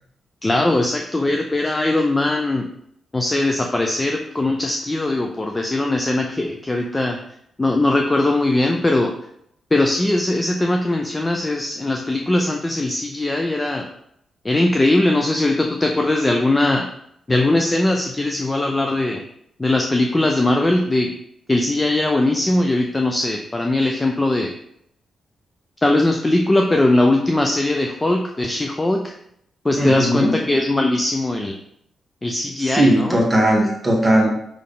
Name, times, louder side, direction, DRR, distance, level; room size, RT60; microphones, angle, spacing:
voice 1, 0.4-2.7 3.1-7.2 7.6-9.1 9.7-13.9 14.4-16.9 17.3-19.2 19.6-21.1 21.5-24.5 25.8-29.1 29.6-31.6 32.2-33.2, left 2 dB, 15° left, 2 dB, 0.5 m, -20 dB
voice 2, 29.8-30.4 32.6-34.3, right 1 dB, 5° right, -3 dB, 1.6 m, -18 dB
5.6 x 5.0 x 3.8 m, 0.73 s
wide cardioid pair, 165°, 0 cm